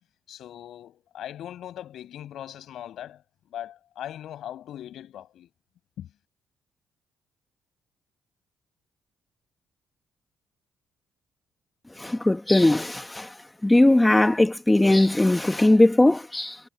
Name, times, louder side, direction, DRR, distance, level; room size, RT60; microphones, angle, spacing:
voice 1, 0.3-3.2 3.5-5.5 6.0-6.1, left 11 dB, 75° left, 7.1 m, -39 dB
voice 2, 12.0-13.3 13.6-16.6, left 1 dB, 10° left, 1.2 m, -19 dB
cardioid pair, 90°, 0 cm